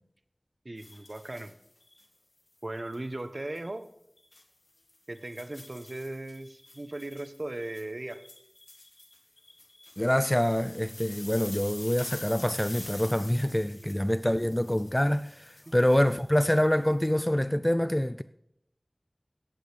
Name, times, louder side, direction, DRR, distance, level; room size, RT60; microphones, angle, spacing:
voice 1, 0.6-1.5 2.6-3.9 5.1-8.2 13.8-14.0 15.7-15.8, right 1 dB, 60° right, 0.7 m, -38 dB
sound 1, 0.8-2.1 2.8-3.7 4.2-4.4 4.9-17.1, left 2 dB, 80° left, 1.7 m, -48 dB
voice 2, 10.0-18.2, left 1 dB, 20° left, 0.3 m, -26 dB
17.5 x 8.4 x 3.3 m
wide cardioid pair, 45°, 0 cm